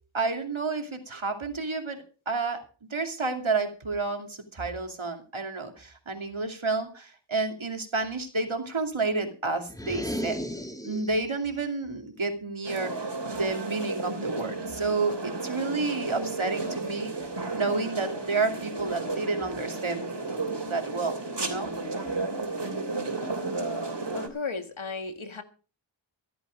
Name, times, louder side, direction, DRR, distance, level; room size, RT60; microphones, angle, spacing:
voice 1, 0.1-2.6 2.9-10.4 10.8-20.0 20.6-21.7, right 3 dB, 90° right, 2.7 m, -30 dB
sound 1, 9.7-11.3, equal, 10° left, 2.2 m, -34 dB
sound 2, 12.6-24.3, right 3 dB, 60° right, 3.2 m, -33 dB
voice 2, 24.2-25.4, left 4 dB, 85° left, 1.8 m, -35 dB
15.0 x 12.0 x 5.2 m
wide cardioid pair, 45°, 46 cm